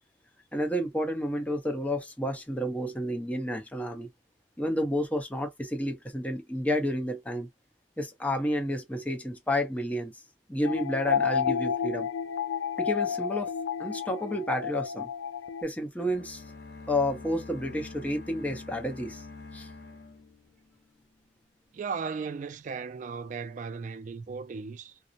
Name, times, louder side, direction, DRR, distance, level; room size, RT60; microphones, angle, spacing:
voice 1, 0.5-4.1 4.6-7.5 8.0-10.1 10.5-12.1 12.8-13.5 13.8-15.1 15.6-16.4 16.9-19.2 19.5-19.7, left 1 dB, 10° left, 0.7 m, -30 dB
sound 1, 10.6-15.6, left 7 dB, 80° left, 0.3 m, -30 dB
sound 2, 16.0-21.0, left 3 dB, 60° left, 0.8 m, -45 dB
voice 2, 21.7-25.0, right 5 dB, 45° right, 0.3 m, -36 dB
2.7 x 2.0 x 2.4 m
head